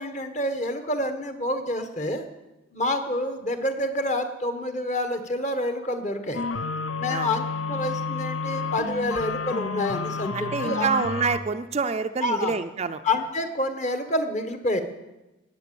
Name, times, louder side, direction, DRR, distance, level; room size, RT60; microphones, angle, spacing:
voice 1, 0.0-2.2 2.7-6.4 7.0-10.9 12.2-12.6 13.0-14.8, left 1 dB, 35° left, 8 dB, 1.2 m, -28 dB
sound 1, 6.3-11.4, left 4 dB, 75° left, 0.7 m, -30 dB
voice 2, 10.3-13.0, right 5 dB, 30° right, 9 dB, 0.4 m, -27 dB
18.0 x 7.5 x 7.0 m, 1.0 s
head